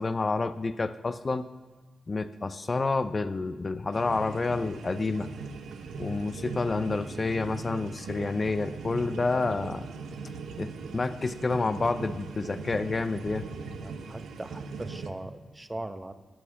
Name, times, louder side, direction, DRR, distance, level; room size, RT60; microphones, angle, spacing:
voice 1, 0.0-1.5 2.1-5.3 6.0-9.9 10.6-13.5, left 3 dB, 45° left, 11 dB, 0.5 m, -29 dB
sound 1, 3.9-15.1, right 4 dB, 80° right, 0.9 m, -39 dB
voice 2, 13.8-16.1, right 2 dB, 25° right, 10 dB, 0.9 m, -39 dB
12.5 x 6.2 x 7.0 m, 1.3 s
supercardioid pair, 45°, 0 cm